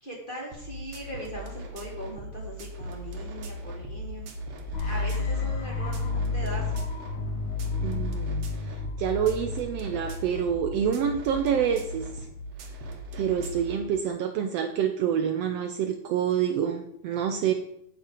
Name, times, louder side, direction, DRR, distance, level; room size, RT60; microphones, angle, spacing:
voice 1, 0.0-6.8, right 1 dB, 20° left, -3 dB, 1.9 m, -40 dB
sound 1, 0.5-13.8, equal, 60° right, 2.2 m, -39 dB
sound 2, 4.7-10.7, left 4 dB, 65° left, 2.9 m, -31 dB
voice 2, 7.8-12.3 13.1-17.5, right 8 dB, 90° right, 6 dB, 1.4 m, -27 dB
9.0 x 8.3 x 4.9 m, 0.76 s
omnidirectional pair, 3.7 m